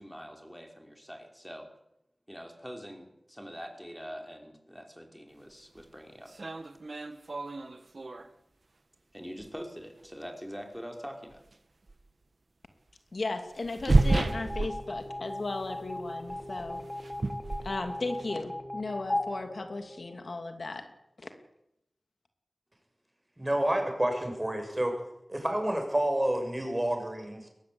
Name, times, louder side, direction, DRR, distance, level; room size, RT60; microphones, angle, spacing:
voice 1, 0.0-1.7 2.3-6.3 9.1-11.4, equal, ahead, 3 dB, 5.4 m, -44 dB
sound 1, 5.8-5.9 6.3-8.3 9.4-9.5 11.3-11.5 11.9-12.0 13.5-15.4 15.6-15.9 16.3-18.3, right 2 dB, 60° right, 1.7 m, -30 dB
voice 2, 13.1-16.8 17.6-20.9 21.2-21.3, left 3 dB, 75° left, 6 dB, 2.7 m, -36 dB
sound 2, 14.0-20.5, left 1 dB, 35° left, 3.6 m, -38 dB
voice 3, 23.4-25.0 25.3-27.5, right 1 dB, 20° right, 4 dB, 7.2 m, -29 dB
22.0 x 18.5 x 8.7 m, 0.82 s
wide cardioid pair, 60°, 0 cm